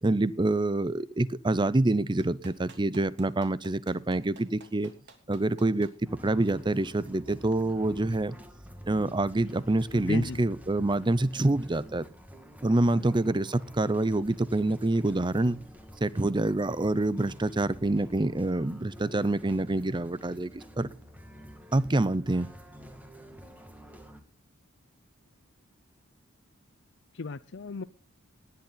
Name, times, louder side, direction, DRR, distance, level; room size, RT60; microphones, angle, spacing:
voice 1, 0.0-4.9 5.3-5.9 6.2-8.4 8.9-12.1 12.6-15.6 16.0-20.9 21.7-22.5, right 2 dB, 25° right, 0.7 m, -26 dB
Clapping, 2.2-5.9 7.4-7.5, right 4 dB, 60° right, 3.2 m, -52 dB
sound 1, 6.0-24.2, equal, 10° right, 2.1 m, -49 dB
voice 2, 9.9-10.4 13.0-13.1 27.1-27.8, left 3 dB, 60° left, 0.6 m, -35 dB
19.5 x 10.5 x 4.0 m
head